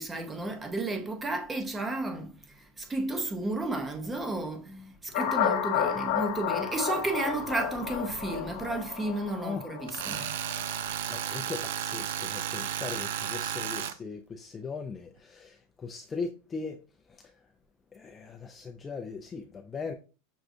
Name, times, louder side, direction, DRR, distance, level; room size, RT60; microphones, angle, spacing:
voice 1, 0.0-10.3, right 2 dB, 15° right, 0.6 m, -33 dB
sound 1, 5.1-10.7, left 9 dB, 60° left, 1.2 m, -32 dB
Tools, 9.9-13.9, right 10 dB, 75° right, 0.4 m, -33 dB
voice 2, 11.1-16.8 17.1-17.3 17.9-19.9, left 4 dB, 20° left, 0.3 m, -39 dB
6.1 x 2.3 x 2.6 m
supercardioid pair, 140°, 0 cm